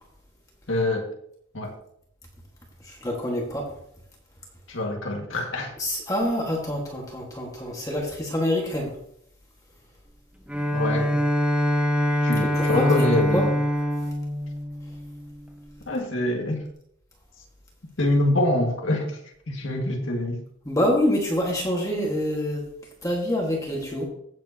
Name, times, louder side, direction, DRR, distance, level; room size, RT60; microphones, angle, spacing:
voice 1, 0.7-1.1 1.5-1.7 4.7-5.7 10.7-11.2 12.2-13.6 15.9-16.6 18.0-19.2 19.5-20.4, left 1 dB, 70° left, 1 dB, 1.9 m, -25 dB
voice 2, 2.9-3.6 5.8-8.9 12.5-12.9 13.2-13.4 20.6-22.6 23.0-24.0, left 1 dB, 15° left, -2 dB, 1.6 m, -26 dB
Bowed string instrument, 10.5-15.6, equal, 5° right, 0.7 m, -24 dB
16.0 x 7.5 x 2.9 m, 0.70 s
head